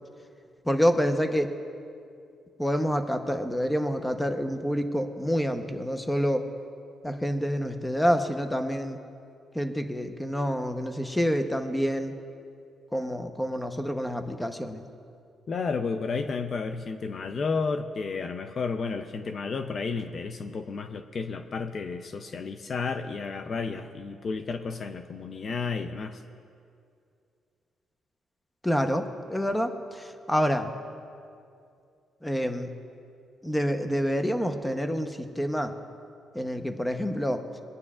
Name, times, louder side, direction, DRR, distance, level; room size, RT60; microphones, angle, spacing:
voice 1, 0.6-1.5 2.6-6.5 7.0-9.0 9.5-12.1 12.9-14.8 28.6-30.7 32.2-32.7 33.4-35.7 36.3-37.5, equal, 5° left, 6 dB, 0.9 m, -27 dB
voice 2, 15.5-26.2, left 4 dB, 50° left, 8 dB, 0.5 m, -32 dB
23.0 x 9.6 x 2.4 m, 2.4 s
cardioid pair, 90°, 0 cm